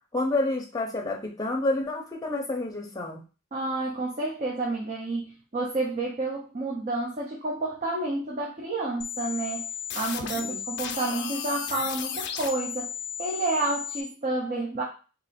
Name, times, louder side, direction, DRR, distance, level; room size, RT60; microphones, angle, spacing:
voice 1, 0.1-3.2 10.3-10.6, left 2 dB, 15° left, 1 dB, 0.7 m, -29 dB
voice 2, 3.5-9.7 9.9-12.9 13.2-14.8, right 2 dB, 35° right, -2 dB, 0.6 m, -30 dB
sound 1, 9.0-14.0, left 8 dB, 50° left, 0.4 m, -34 dB
2.8 x 2.6 x 4.1 m, 0.34 s
head